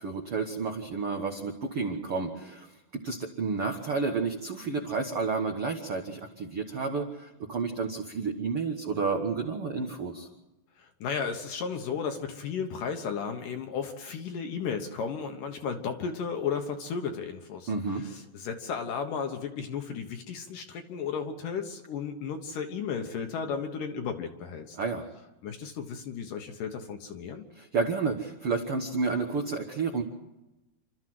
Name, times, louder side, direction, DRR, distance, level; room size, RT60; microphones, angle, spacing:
voice 1, 0.0-2.7 2.9-10.3 17.7-18.0 24.7-25.0 27.5-30.0, right 4 dB, 65° right, 2 dB, 1.3 m, -31 dB
voice 2, 10.8-24.8 25.4-27.5, left 6 dB, 65° left, 5 dB, 2.5 m, -34 dB
28.0 x 13.0 x 7.8 m, 0.99 s
omnidirectional pair, 4.8 m